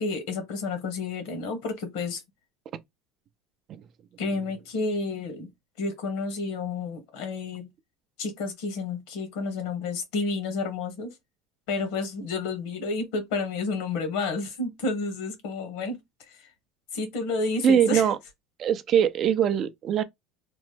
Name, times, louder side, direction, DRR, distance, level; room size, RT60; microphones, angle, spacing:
voice 1, 0.0-2.2 4.2-5.5 5.8-7.7 8.2-11.1 11.7-16.0 16.3-16.5 16.9-18.1, left 3 dB, 75° left, 1.2 m, -30 dB
voice 2, 17.6-18.2 18.6-20.0, right 8 dB, 40° right, 0.4 m, -22 dB
2.9 x 2.1 x 3.2 m
supercardioid pair, 135°, 0 cm